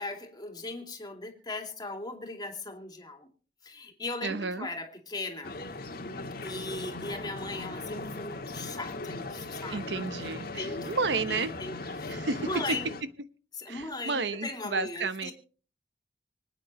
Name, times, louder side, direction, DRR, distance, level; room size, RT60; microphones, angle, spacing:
voice 1, 0.0-3.3 3.6-5.6 6.4-9.9 10.6-10.9 11.2-12.9 13.6-15.3, left 2 dB, 25° left, 2.5 m, -38 dB
voice 2, 4.2-4.7 9.7-11.5 12.1-12.5 13.7-15.3, right 4 dB, 70° right, 0.9 m, -32 dB
sound 1, 5.4-13.0, left 2 dB, 55° left, 1.7 m, -38 dB
25.5 x 9.1 x 3.1 m
head